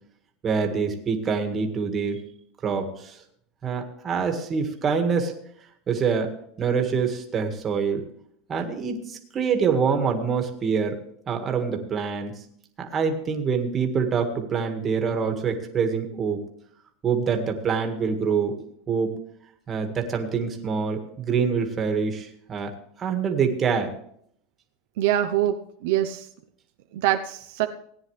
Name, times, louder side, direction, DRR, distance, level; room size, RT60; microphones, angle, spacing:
voice 1, 0.4-2.2 2.6-3.2 3.6-5.3 5.9-6.3 6.6-8.0 8.5-11.0 11.3-12.3 12.8-16.4 17.0-19.1 19.7-22.7 23.0-23.9, right 6 dB, 25° right, 4 dB, 1.9 m, -25 dB
voice 2, 25.0-25.5 25.8-26.3 26.9-27.7, right 13 dB, 70° right, 6 dB, 0.8 m, -23 dB
18.0 x 9.7 x 3.3 m, 0.66 s
supercardioid pair, 145°, 0 cm